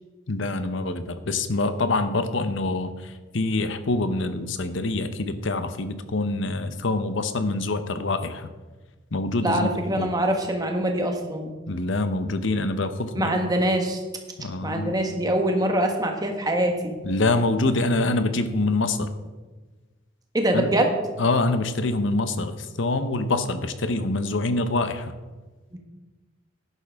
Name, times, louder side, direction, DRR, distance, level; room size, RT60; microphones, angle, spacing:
voice 1, 0.3-8.5 9.1-10.1 11.7-13.4 14.4-15.0 17.0-19.1 20.5-20.7 21.2-25.1, left 2 dB, 70° left, 10 dB, 0.8 m, -25 dB
voice 2, 9.4-11.5 13.1-14.0 14.6-17.0 20.3-20.9 25.7-25.8, right 1 dB, 20° right, 3 dB, 1.3 m, -24 dB
12.5 x 10.5 x 3.5 m, 1.3 s
head